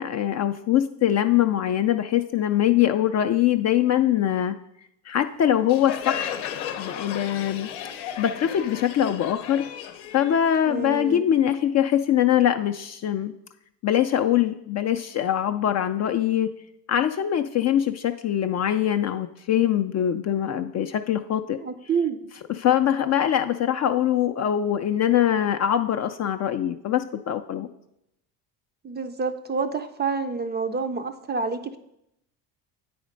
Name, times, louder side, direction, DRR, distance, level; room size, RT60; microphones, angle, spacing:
voice 1, 0.0-4.6 5.1-6.4 6.8-7.7 8.2-9.6 10.1-13.3 13.8-16.5 16.9-21.6 22.6-27.7, left 10 dB, 35° left, 8 dB, 0.4 m, -23 dB
Crowd, 5.7-11.1, left 10 dB, 85° left, 0.8 m, -34 dB
voice 2, 10.6-11.2 21.6-22.2 28.8-31.8, right 5 dB, 20° right, 8 dB, 0.4 m, -28 dB
8.6 x 4.3 x 5.1 m, 0.81 s
supercardioid pair, 75°, 49 cm